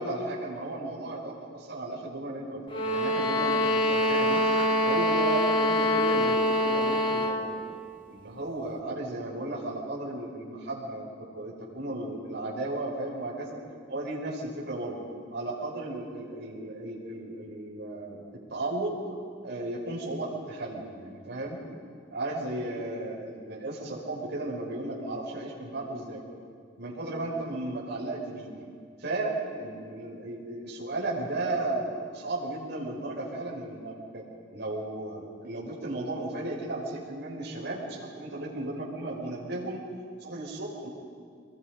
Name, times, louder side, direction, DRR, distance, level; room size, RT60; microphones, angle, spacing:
voice 1, 0.0-4.4 4.8-7.6 8.1-13.6 13.9-15.0 15.3-19.1 19.4-21.6 22.1-26.2 26.8-28.5 29.0-34.2 34.5-39.8 40.2-40.9, right 2 dB, 60° right, -5 dB, 6.2 m, -35 dB
sound 1, 2.7-7.4, left 1 dB, 25° left, 1.9 m, -25 dB
27.5 x 22.0 x 5.4 m, 2.2 s
head